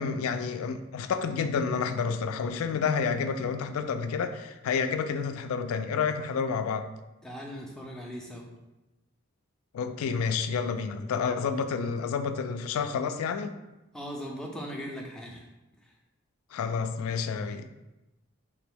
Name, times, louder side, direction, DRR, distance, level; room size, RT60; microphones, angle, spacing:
voice 1, 0.0-6.9 9.7-13.5 16.5-17.7, left 5 dB, 80° left, 9 dB, 0.3 m, -29 dB
voice 2, 7.2-8.5 13.9-15.5 15.8-15.9, equal, 5° left, -1 dB, 0.4 m, -39 dB
3.4 x 3.0 x 3.4 m, 0.99 s
head